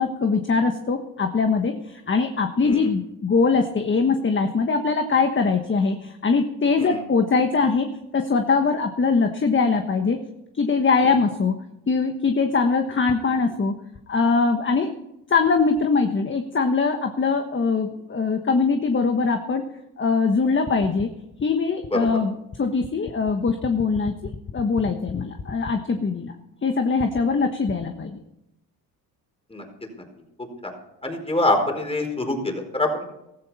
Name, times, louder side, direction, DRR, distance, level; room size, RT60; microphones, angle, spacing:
voice 1, 0.0-10.2 10.6-11.6 11.9-13.7 14.1-15.0 15.3-19.7 20.0-21.1 21.4-26.3 26.6-28.2, left 4 dB, 30° left, 6 dB, 1.3 m, -22 dB
voice 2, 31.0-33.0, left 2 dB, 15° left, 3 dB, 4.5 m, -24 dB
16.0 x 13.5 x 4.2 m, 0.87 s
supercardioid pair, 70°, 37 cm